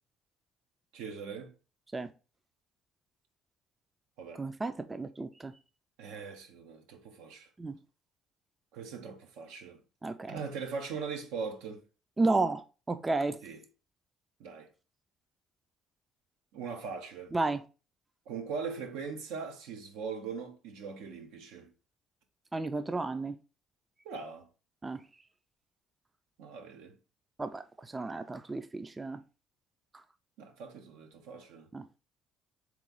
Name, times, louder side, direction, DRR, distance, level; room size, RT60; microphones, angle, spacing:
voice 1, 0.9-1.5 4.2-4.4 6.0-7.5 8.7-9.8 10.3-11.8 13.4-13.6 14.4-14.7 16.5-17.3 18.3-21.7 24.0-24.5 26.4-27.0 30.4-31.7, right 5 dB, 85° right, 0.8 m, -40 dB
voice 2, 4.3-5.5 7.6-7.8 10.0-10.4 12.2-13.4 17.3-17.6 22.5-23.3 24.8-25.0 27.4-29.2 31.7-31.8, right 3 dB, 20° right, 0.4 m, -32 dB
3.5 x 3.0 x 3.9 m
supercardioid pair, 75°, 0 cm